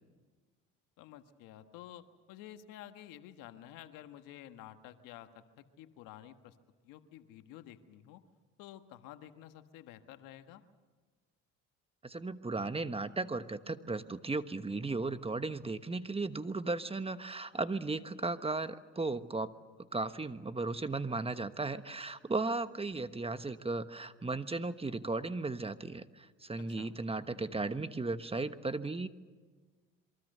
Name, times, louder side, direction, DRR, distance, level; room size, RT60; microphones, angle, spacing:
voice 1, 1.0-6.5 6.8-8.2 8.6-10.6 26.6-26.9, left 12 dB, 80° left, 9 dB, 1.5 m, -51 dB
voice 2, 12.0-19.5 19.9-29.1, right 3 dB, 20° right, 11 dB, 1.2 m, -36 dB
27.5 x 23.5 x 6.7 m, 1.4 s
supercardioid pair, 75°, 32 cm